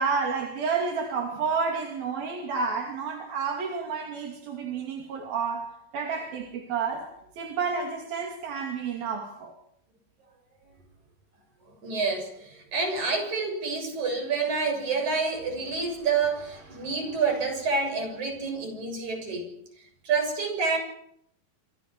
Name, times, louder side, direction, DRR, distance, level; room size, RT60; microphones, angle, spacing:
voice 1, 0.0-7.1 7.4-9.5, right 5 dB, 80° right, 4.4 m, -30 dB
voice 2, 11.8-19.5 20.0-20.8, right 4 dB, 50° right, 8.4 m, -28 dB
28.5 x 26.0 x 4.9 m
omnidirectional pair, 4.2 m